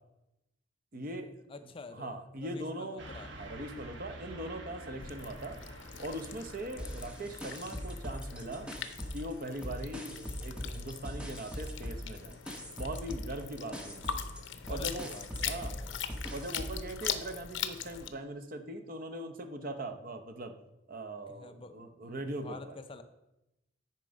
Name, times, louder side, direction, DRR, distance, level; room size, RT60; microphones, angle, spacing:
voice 1, 0.9-1.4 1.9-3.0 3.4-5.6 6.0-8.7 9.1-12.4 12.8-14.3 14.7-15.8 16.3-20.5 20.9-22.8, right 1 dB, 45° right, 7 dB, 0.8 m, -40 dB
voice 2, 1.5-3.3 13.7-14.0 14.6-16.0 21.3-23.0, left 3 dB, 30° left, 9 dB, 0.5 m, -49 dB
Car passing by / Truck, 3.0-8.9, right 1 dB, 65° right, 1.1 m, -49 dB
sound 1, 5.0-18.1, left 8 dB, 75° left, 0.7 m, -42 dB
sound 2, 6.8-9.3 9.6-16.9, equal, 5° right, 0.9 m, -41 dB
9.4 x 4.6 x 5.2 m, 0.91 s
head